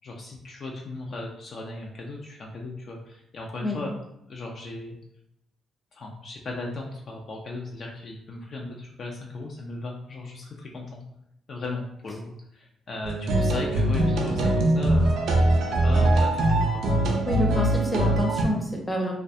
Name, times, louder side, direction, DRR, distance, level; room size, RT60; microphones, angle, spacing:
voice 1, 0.0-4.0 4.3-5.0 5.9-11.0 11.5-15.1 15.8-16.8, left 2 dB, 50° left, -1 dB, 0.4 m, -36 dB
sound 1, 13.0-18.4, right 1 dB, 75° right, 0.4 m, -22 dB
voice 2, 17.2-19.2, left 1 dB, 10° left, -1 dB, 0.6 m, -28 dB
2.3 x 2.2 x 2.6 m, 0.79 s
cardioid pair, 90°, 0 cm